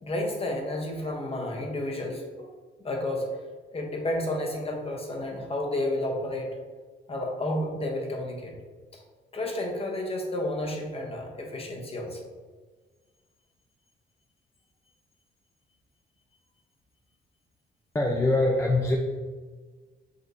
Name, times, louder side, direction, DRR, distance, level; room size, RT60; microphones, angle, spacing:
voice 1, 0.0-2.5 2.8-3.3 3.7-6.6 7.1-8.5 9.3-12.2, left 1 dB, 30° left, 1 dB, 0.8 m, -31 dB
voice 2, 17.9-19.0, left 2 dB, 15° left, 0 dB, 0.4 m, -23 dB
5.1 x 2.9 x 2.6 m, 1.4 s
cardioid pair, 90°, 20 cm